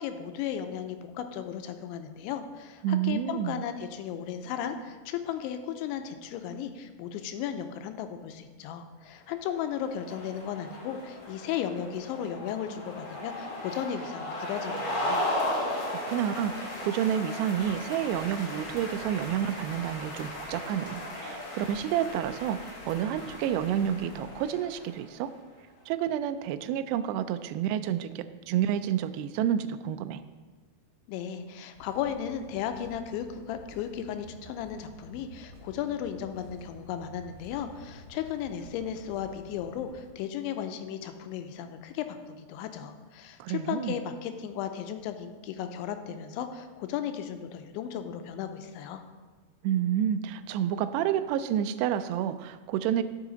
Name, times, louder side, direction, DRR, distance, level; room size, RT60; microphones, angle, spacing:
voice 1, 0.0-15.2 31.1-49.0, left 9 dB, 90° left, 8 dB, 3.0 m, -35 dB
voice 2, 2.8-3.6 15.9-22.6 22.9-25.3 25.9-30.2 43.4-44.0 49.6-53.0, right 10 dB, 85° right, 10 dB, 2.4 m, -29 dB
sound 1, 9.4-25.1, left 1 dB, 60° left, 1.3 m, -36 dB
sound 2, 31.7-40.1, equal, 45° right, 1.1 m, -51 dB
12.5 x 6.5 x 3.9 m, 1.4 s
omnidirectional pair, 5.2 m